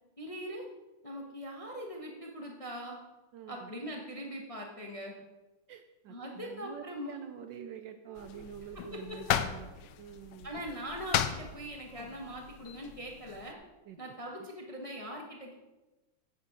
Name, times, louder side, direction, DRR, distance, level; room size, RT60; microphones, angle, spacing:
voice 1, 0.2-0.6 1.0-3.0 3.5-5.1 6.1-7.2 8.9-9.2 9.6-9.7 10.4-13.6 14.0-15.6, equal, 25° left, 0 dB, 0.7 m, -41 dB
voice 2, 3.3-3.7 5.7-9.7 10.0-10.5 13.9-14.1, right 8 dB, 70° right, 8 dB, 1.1 m, -47 dB
sound 1, 8.2-13.5, left 10 dB, 70° left, 1.1 m, -36 dB
9.8 x 7.5 x 4.8 m, 1.1 s
omnidirectional pair, 2.4 m